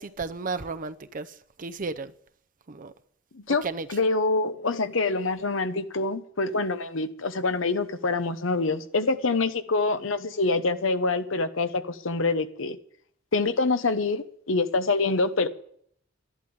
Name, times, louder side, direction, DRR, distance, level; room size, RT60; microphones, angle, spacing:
voice 1, 0.0-2.1 2.7-2.9 3.5-3.9, right 4 dB, 45° right, 0.6 m, -34 dB
voice 2, 3.9-12.8 13.3-15.5, left 3 dB, 85° left, 1.1 m, -26 dB
12.0 x 11.5 x 8.8 m
head